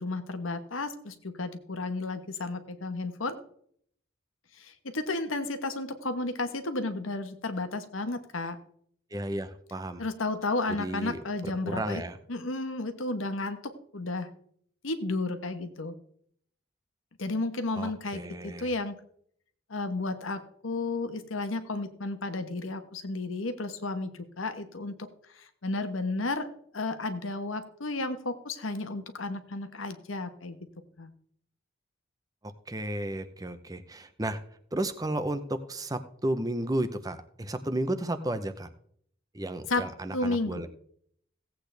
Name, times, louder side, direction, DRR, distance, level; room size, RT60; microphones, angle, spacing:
voice 1, 0.0-3.4 4.6-8.6 10.0-12.0 12.3-13.6 13.9-14.3 14.8-15.9 17.2-19.0 19.7-25.1 25.6-26.5 26.7-30.6 31.0-31.1 39.7-39.9 40.1-40.6, left 2 dB, 90° left, 8 dB, 1.2 m, -32 dB
voice 2, 9.1-10.0 10.7-12.2 17.7-18.7 32.7-34.4 34.7-38.7 39.3-40.7, right 1 dB, 20° right, 9 dB, 0.7 m, -33 dB
16.5 x 8.3 x 3.4 m, 0.64 s
head